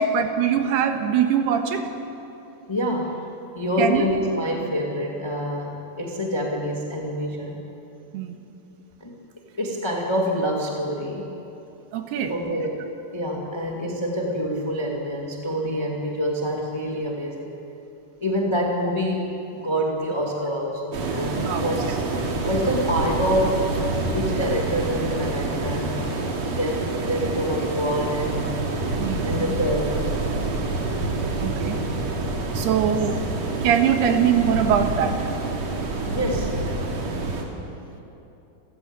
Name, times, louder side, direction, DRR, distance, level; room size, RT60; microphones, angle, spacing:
voice 1, 0.0-1.9 3.8-4.1 8.1-8.4 11.9-12.3 21.5-21.6 29.0-29.3 31.4-31.8 32.6-33.2 33.6-35.3, right 8 dB, 85° right, 6 dB, 3.4 m, -22 dB
voice 2, 2.7-3.2 3.5-7.6 9.0-9.2 9.6-11.3 12.2-12.8 13.1-17.5 18.2-22.0 22.4-23.6 24.0-26.0 26.5-28.6 29.2-30.0 32.7-33.1 34.0-34.1 36.1-36.5, equal, 15° left, -1 dB, 0.9 m, -26 dB
sound 1, 20.9-37.4, right 3 dB, 50° right, 3.2 m, -27 dB
28.0 x 14.5 x 8.9 m, 2.9 s
omnidirectional pair, 4.5 m